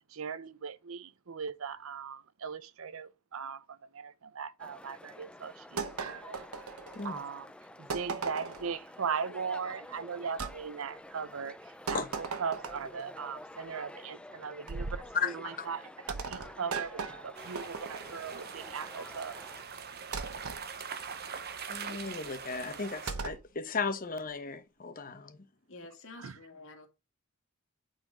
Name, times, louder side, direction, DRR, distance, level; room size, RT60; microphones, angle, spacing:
voice 1, 0.1-6.4 7.0-7.5 7.8-11.6 11.9-19.4 26.2-26.4, right 6 dB, 70° right, 0.6 m, -39 dB
sound 1, 4.6-19.6, left 1 dB, 5° left, 0.5 m, -50 dB
sound 2, 5.8-7.2 7.9-8.7 10.4-10.6 11.9-13.0 14.7-15.1 16.1-18.2 20.1-20.6 23.1-23.5, right 4 dB, 85° right, 1.0 m, -38 dB
voice 2, 15.1-15.7 21.7-25.4, left 5 dB, 40° left, 1.0 m, -35 dB
sound 3, 17.3-23.1, right 6 dB, 45° right, 0.9 m, -43 dB
voice 3, 25.7-26.9, left 2 dB, 60° left, 2.0 m, -49 dB
8.9 x 4.3 x 5.0 m
head